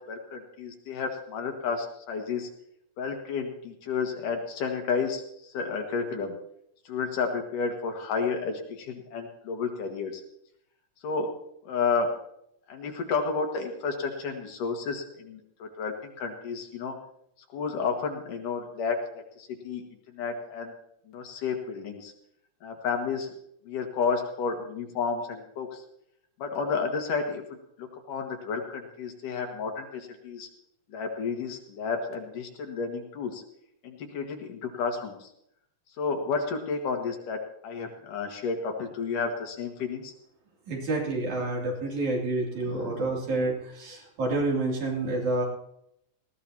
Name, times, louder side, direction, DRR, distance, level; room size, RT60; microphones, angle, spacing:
voice 1, 0.1-2.5 3.0-6.4 6.8-10.2 11.0-11.3 11.6-12.1 12.7-16.9 17.5-19.0 19.4-20.7 21.1-22.1 22.6-23.3 23.7-25.8 26.4-30.5 30.9-33.4 33.8-35.3 36.0-40.1 42.6-43.2, left 5 dB, 80° left, 2 dB, 3.3 m, -31 dB
voice 2, 40.7-45.5, right 2 dB, 65° right, -1 dB, 4.2 m, -28 dB
19.0 x 15.0 x 2.9 m, 0.74 s
omnidirectional pair, 3.7 m